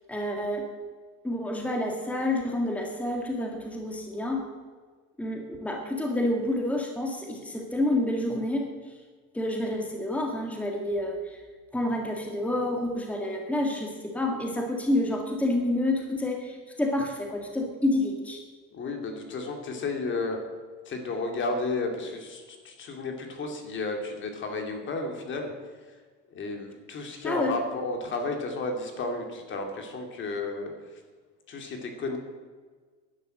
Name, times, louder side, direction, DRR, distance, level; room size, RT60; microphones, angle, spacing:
voice 1, 0.1-0.7 1.2-4.4 5.2-8.9 9.3-11.4 11.7-18.4 27.2-27.5, left 1 dB, 5° left, 1 dB, 1.9 m, -29 dB
voice 2, 18.7-20.4 20.9-25.5 26.3-31.0 31.5-32.2, left 3 dB, 40° left, 4 dB, 2.6 m, -32 dB
11.0 x 10.0 x 7.9 m, 1.5 s
cardioid pair, 130°, 30 cm